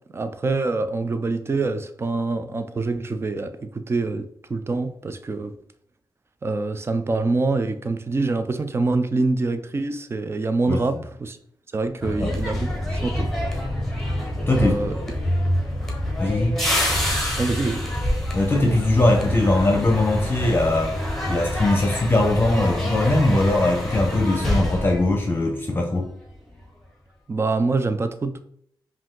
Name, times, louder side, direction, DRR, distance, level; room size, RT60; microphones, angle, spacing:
voice 1, 0.1-5.5 6.4-11.4 11.7-13.3 14.5-15.0 17.4-17.8 27.3-28.4, right 3 dB, 30° right, 0.5 m, -25 dB
sound 1, 12.0-26.0 26.3-26.6, left 1 dB, 5° left, 1.2 m, -26 dB
voice 2, 14.5-14.8 16.2-16.6 18.3-21.0 21.3-26.1, left 2 dB, 25° left, 0.8 m, -20 dB
4.9 x 2.7 x 3.7 m
wide cardioid pair, 105°, 9 cm